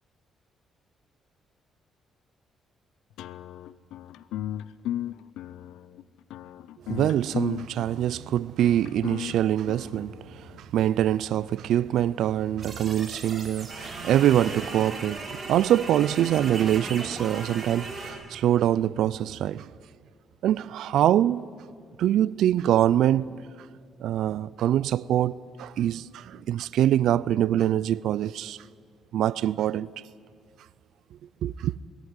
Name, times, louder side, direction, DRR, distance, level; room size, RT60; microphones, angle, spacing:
sound 1, 3.2-10.6, left 12 dB, 90° left, 0.6 m, -36 dB
voice 1, 6.9-10.4 10.7-19.7 20.4-21.5 22.0-23.3 24.0-28.6 29.1-29.9 31.4-31.7, right 11 dB, 80° right, 0.4 m, -24 dB
sound 2, 12.6-18.1, right 3 dB, 35° right, 4.6 m, -37 dB
20.5 x 14.5 x 9.8 m
cardioid pair, 90°, 0 cm